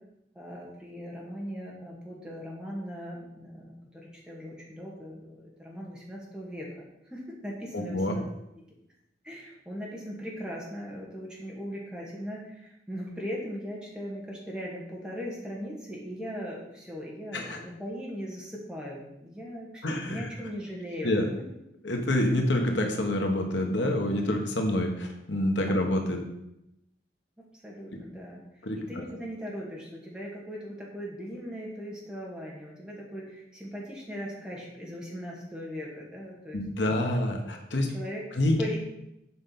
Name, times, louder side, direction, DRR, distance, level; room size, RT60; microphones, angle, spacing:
voice 1, 0.3-6.8 7.1-8.2 9.2-21.1 25.7-25.8 27.4-28.4 28.7-37.5 37.9-38.2 38.6-38.8, equal, 5° right, -4 dB, 2.0 m, -39 dB
voice 2, 7.7-8.2 17.3-17.6 19.8-20.2 21.0-21.3 21.8-26.2 28.6-29.0 36.5-37.9 38.3-38.6, left 1 dB, 85° left, 3 dB, 1.4 m, -27 dB
7.7 x 5.2 x 5.9 m, 0.84 s
head